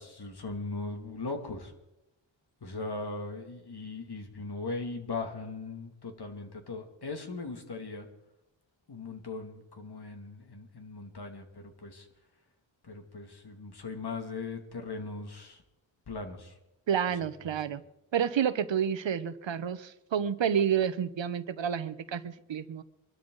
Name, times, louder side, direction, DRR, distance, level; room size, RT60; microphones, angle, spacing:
voice 1, 0.0-1.7 2.6-8.1 8.9-12.1 12.8-15.6 16.1-16.5, left 3 dB, 55° left, 4 dB, 2.6 m, -39 dB
voice 2, 16.9-17.8 18.1-22.8, right 8 dB, 70° right, 14 dB, 1.0 m, -29 dB
24.5 x 12.5 x 4.0 m, 0.90 s
wide cardioid pair, 80°, 47 cm